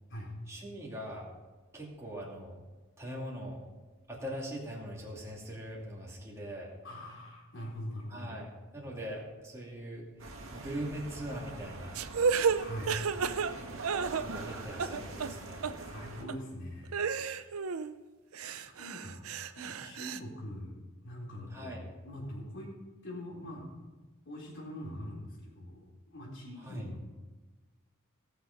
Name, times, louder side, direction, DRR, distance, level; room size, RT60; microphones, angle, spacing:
voice 1, 0.5-1.3 1.7-2.6 3.0-3.6 4.1-6.7 8.1-10.0 10.5-12.0 14.2-15.6 21.5-21.9 26.6-26.9, equal, 15° right, -4 dB, 2.6 m, -41 dB
voice 2, 6.8-8.3 12.6-13.0 15.8-17.6 18.4-20.7 21.0-22.7 23.0-23.7 24.3-27.0, left 1 dB, 60° left, -3 dB, 3.9 m, -43 dB
sound 1, 10.2-16.2, right 2 dB, 65° right, 2.1 m, -44 dB
sound 2, 11.9-14.5 14.8-15.3 15.6-15.7 16.3-16.4 16.9-17.9 18.3-20.2, right 6 dB, 85° right, 0.6 m, -32 dB
18.0 x 6.9 x 5.3 m, 1.2 s
head